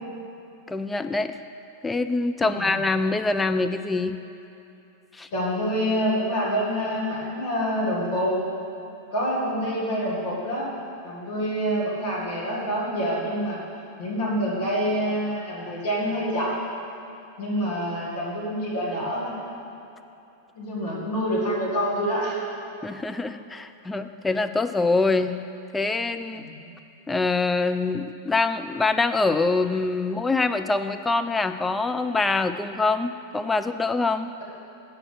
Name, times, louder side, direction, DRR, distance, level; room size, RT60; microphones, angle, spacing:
voice 1, 0.7-1.3 1.8-4.2 5.2-5.3 22.8-25.3 25.7-26.4 27.1-34.3, left 3 dB, 10° left, 8 dB, 0.4 m, -24 dB
voice 2, 5.3-8.3 9.1-10.7 11.0-13.6 14.0-16.5 17.4-19.4 20.6-22.4 26.4-26.6, equal, 55° left, -6 dB, 2.5 m, -26 dB
7.5 x 6.1 x 7.9 m, 2.9 s
figure-of-eight pair, 90°, 0 cm